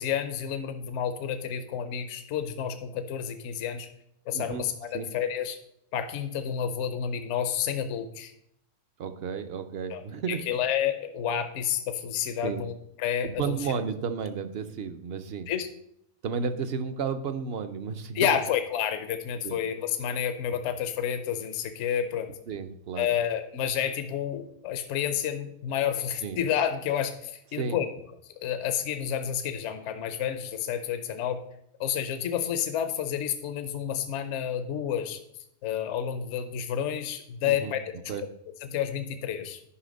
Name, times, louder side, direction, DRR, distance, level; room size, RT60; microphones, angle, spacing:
voice 1, 0.0-3.9 4.3-5.6 5.9-8.3 9.9-10.0 10.3-12.7 13.0-13.5 15.5-15.7 18.1-22.3 23.0-27.9 28.4-31.4 31.8-35.2 35.6-37.9 38.6-39.6, left 9 dB, 70° left, 9 dB, 1.0 m, -30 dB
voice 2, 4.3-4.7 4.9-5.1 9.0-10.5 12.4-12.7 13.2-15.5 16.2-18.3 19.4-19.6 22.5-23.1 26.2-26.4 27.5-27.8 37.4-37.7 38.1-38.3, right 6 dB, 55° right, 10 dB, 0.8 m, -32 dB
10.0 x 5.5 x 5.2 m, 0.74 s
omnidirectional pair, 1.3 m